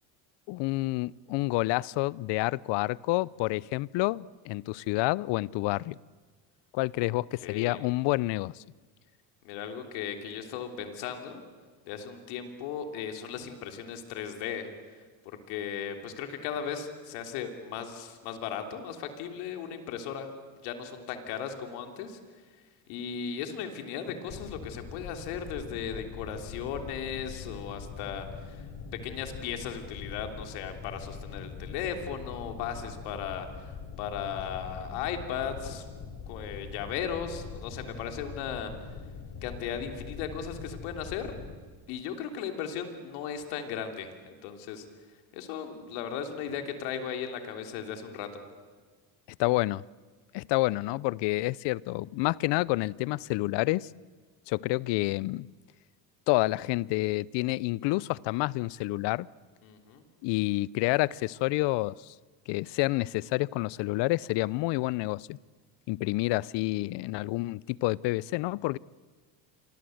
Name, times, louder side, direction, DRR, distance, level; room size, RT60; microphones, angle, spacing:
voice 1, 0.5-6.0 6.7-8.6 49.4-49.8 50.3-53.9 54.5-55.5 56.3-59.3 60.2-62.1 62.5-65.4 65.9-68.8, left 20 dB, 65° left, 23 dB, 0.7 m, -28 dB
voice 2, 7.4-7.8 9.4-11.4 11.8-14.7 15.5-20.3 20.6-22.2 22.9-33.7 34.0-35.9 36.3-38.7 39.4-41.3 41.9-44.8 45.3-48.4 59.6-60.0, left 7 dB, 80° left, 5 dB, 3.4 m, -36 dB
sound 1, 24.3-41.6, left 5 dB, 50° left, 4.6 m, -43 dB
28.0 x 24.0 x 7.9 m, 1.4 s
supercardioid pair, 105°, 46 cm